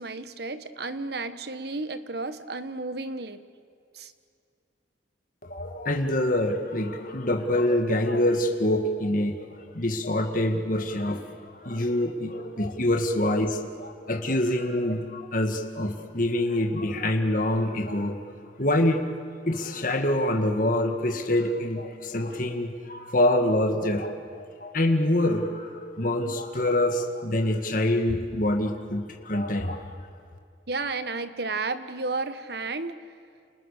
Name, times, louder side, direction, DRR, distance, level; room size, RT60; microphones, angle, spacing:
voice 1, 0.0-3.4 3.9-4.1 30.7-33.0, right 3 dB, 60° right, 11 dB, 1.4 m, -32 dB
voice 2, 5.4-18.1 18.6-19.0 19.5-29.9, left 1 dB, 45° left, 4 dB, 2.0 m, -26 dB
29.5 x 29.5 x 6.7 m, 2.3 s
head